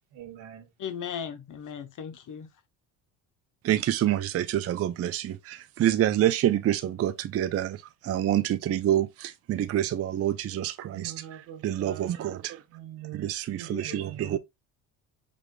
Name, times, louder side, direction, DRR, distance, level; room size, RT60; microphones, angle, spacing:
voice 1, 0.1-0.7 10.9-12.3 12.7-14.4, right 11 dB, 85° right, 1.5 m, -43 dB
voice 2, 0.8-2.5 13.7-14.3, left 8 dB, 45° left, 1.0 m, -38 dB
voice 3, 3.6-11.1 11.6-12.6 13.1-14.4, right 12 dB, 35° right, 0.5 m, -27 dB
5.0 x 3.6 x 2.2 m
supercardioid pair, 80°, 43 cm